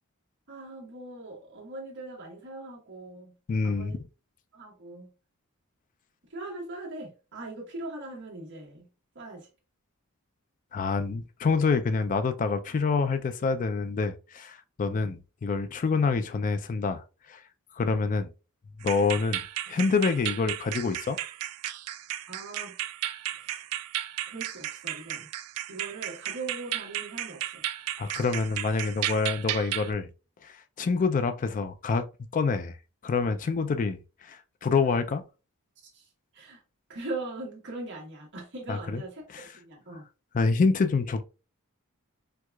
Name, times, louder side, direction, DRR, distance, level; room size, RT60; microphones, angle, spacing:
voice 1, 0.5-3.3 3.6-4.0 4.5-5.1 6.3-8.9 9.1-9.5 22.3-22.8 23.4-23.6 24.3-25.3 25.7-27.6 35.9-36.1 36.3-36.6 36.9-39.2 39.5-40.0, right 2 dB, 55° right, 1.2 m, -40 dB
voice 2, 3.5-4.0 10.7-17.4 17.8-18.3 18.8-19.4 19.7-21.2 28.0-30.1 30.4-32.0 32.3-32.7 33.0-34.0 34.3-35.2 38.7-39.0 39.3-39.4 40.3-41.2, left 4 dB, 35° left, 0.3 m, -27 dB
sound 1, 18.8-29.9, right 13 dB, 80° right, 0.3 m, -34 dB
4.5 x 2.3 x 2.3 m
head